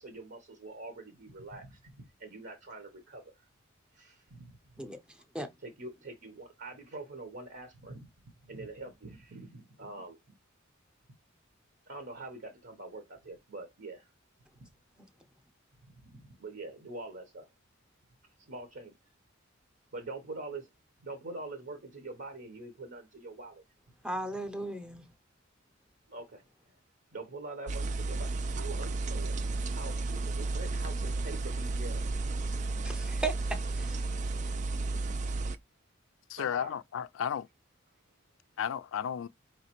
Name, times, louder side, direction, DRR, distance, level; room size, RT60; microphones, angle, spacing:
voice 1, 0.0-3.3 4.0-4.4 5.6-8.0 8.5-10.2 11.9-14.1 16.1-17.5 18.5-18.9 19.9-20.7 21.0-23.6 26.1-26.4 27.1-28.3 28.5-29.4 29.7-32.1 36.4-36.8, right 2 dB, 60° right, 0.9 m, -44 dB
voice 2, 24.0-25.0 32.8-33.3 33.7-34.0, right 2 dB, 5° right, 0.7 m, -35 dB
sound 1, 27.7-35.6, right 3 dB, 40° right, 0.3 m, -33 dB
voice 3, 36.3-37.5 38.6-39.3, left 8 dB, 70° left, 0.3 m, -33 dB
4.9 x 3.1 x 2.9 m
head